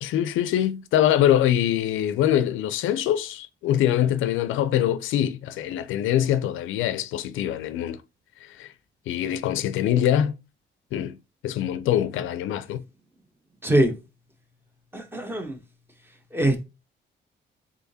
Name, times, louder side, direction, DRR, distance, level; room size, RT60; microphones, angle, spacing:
voice 1, 0.0-8.0 8.4-8.7 9.1-10.3 10.9-11.2 11.4-12.8, left 11 dB, 85° left, 0.4 m, -24 dB
voice 2, 13.6-13.9 14.9-15.6 16.3-16.6, right 1 dB, 10° right, 0.9 m, -22 dB
3.7 x 3.6 x 2.7 m
cardioid pair, 90°, 20 cm